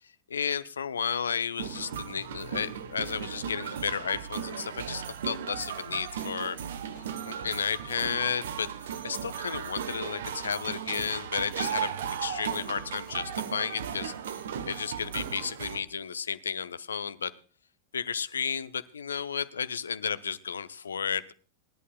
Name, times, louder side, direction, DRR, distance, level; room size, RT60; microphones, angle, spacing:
voice 1, 0.3-6.6 6.9-11.9 12.2-14.1 14.6-17.3 17.9-21.3, left 6 dB, 70° left, 16 dB, 0.7 m, -33 dB
sound 1, 1.6-15.8, right 8 dB, 60° right, 1.1 m, -36 dB
sound 2, 6.9-16.6, left 4 dB, 25° left, 7.6 m, -59 dB
26.0 x 11.0 x 2.3 m, 0.39 s
figure-of-eight pair, 90°, 0 cm